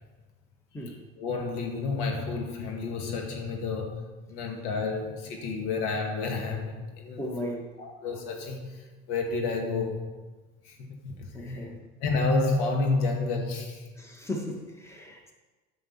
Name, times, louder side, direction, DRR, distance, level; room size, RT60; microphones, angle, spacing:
voice 1, 1.2-7.5 7.8-10.1 10.6-11.7 12.0-13.9, left 3 dB, 65° left, 1.8 m, -30 dB
voice 2, 7.2-7.7 11.3-11.8 14.0-15.3, equal, 5° left, 1.8 m, -36 dB
9.1 x 6.4 x 5.8 m
hypercardioid pair, 75°, 41 cm